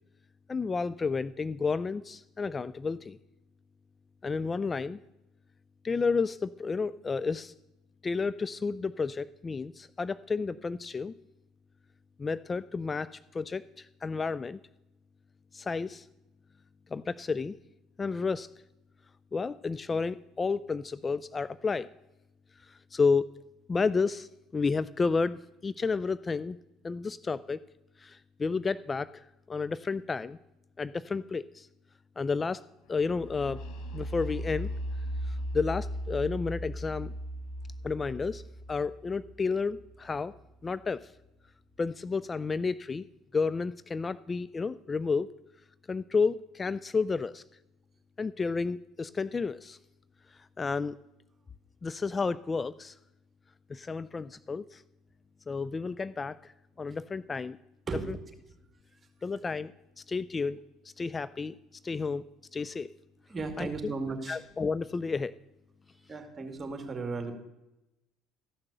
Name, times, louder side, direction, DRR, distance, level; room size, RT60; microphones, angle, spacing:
voice 1, 0.5-3.2 4.2-5.0 5.8-7.5 8.0-11.1 12.2-14.6 15.5-16.1 16.9-17.5 18.0-18.5 19.3-21.9 22.6-23.2 23.7-26.6 26.8-27.6 28.0-30.4 30.8-31.7 32.2-32.6 32.9-33.6 33.9-34.7 35.3-37.1 37.8-38.4 38.7-40.3 40.6-41.1 41.8-43.0 43.3-45.3 45.9-47.4 48.2-49.8 50.6-51.0 51.8-53.0 53.7-54.8 55.5-56.5 56.8-57.6 58.1-58.2 59.2-59.7 60.0-60.6 60.8-61.5 61.8-62.2 62.5-62.9 63.6-63.7 64.3-65.4, left 4 dB, 25° left, 17 dB, 0.3 m, -31 dB
sound 1, 33.0-40.7, equal, 70° left, 1.2 m, -38 dB
voice 2, 57.9-58.2 58.9-59.0 63.3-64.4 65.9-67.3, right 4 dB, 30° right, 5 dB, 2.1 m, -36 dB
14.0 x 5.9 x 6.7 m, 0.94 s
hypercardioid pair, 70°, 0 cm